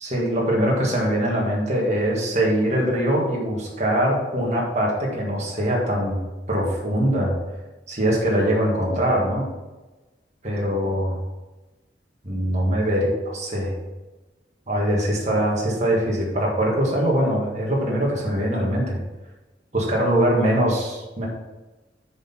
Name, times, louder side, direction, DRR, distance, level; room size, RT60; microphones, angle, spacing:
voice 1, 0.0-6.2 6.5-7.3 7.9-9.5 10.4-11.2 12.2-13.7 14.7-19.0 19.7-21.3, right 1 dB, 40° right, -3 dB, 1.7 m, -22 dB
7.6 x 4.4 x 5.7 m, 1.1 s
head